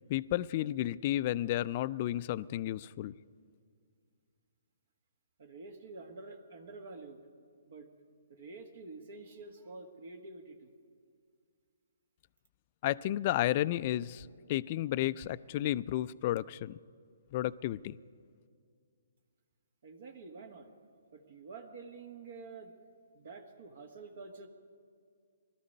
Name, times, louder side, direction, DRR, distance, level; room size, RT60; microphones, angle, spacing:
voice 1, 0.1-3.1 12.8-16.8 17.3-18.0, left 14 dB, 40° left, 17 dB, 0.3 m, -32 dB
voice 2, 5.4-7.2 7.7-7.9 8.3-10.7 19.8-20.7 21.1-22.7 23.1-24.5, right 3 dB, 60° right, 6 dB, 1.4 m, -48 dB
20.0 x 13.0 x 5.4 m, 2.2 s
figure-of-eight pair, 135°, 0 cm